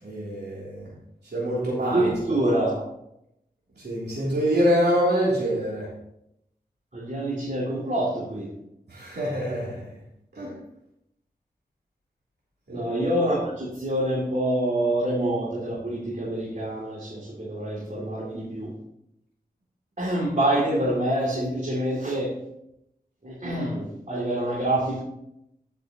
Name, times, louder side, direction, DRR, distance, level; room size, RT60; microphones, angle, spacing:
voice 1, 0.0-0.9 1.2-2.0 3.7-5.9 8.9-9.8 10.3-10.5 12.7-12.9, equal, 90° right, -7 dB, 3.2 m, -25 dB
voice 2, 1.8-2.8 6.9-8.5 12.7-18.7 20.0-22.3 23.2-25.0, right 1 dB, 50° right, -6 dB, 2.7 m, -26 dB
14.0 x 6.6 x 3.0 m, 0.81 s
wide cardioid pair, 60°, 17 cm